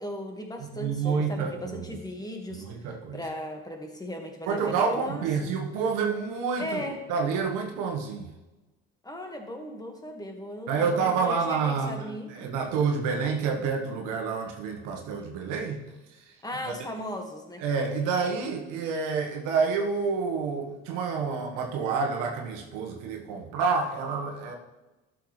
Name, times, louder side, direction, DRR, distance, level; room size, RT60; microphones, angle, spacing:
voice 1, 0.0-5.5 6.6-7.0 9.0-12.3 16.4-17.6, left 1 dB, 10° left, 3 dB, 1.8 m, -37 dB
voice 2, 0.6-2.0 2.5-3.2 4.5-8.3 10.7-15.8 16.1-16.3 17.6-24.6, right 5 dB, 70° right, 2 dB, 1.5 m, -28 dB
12.0 x 6.7 x 3.3 m, 1.1 s
hypercardioid pair, 70°, 32 cm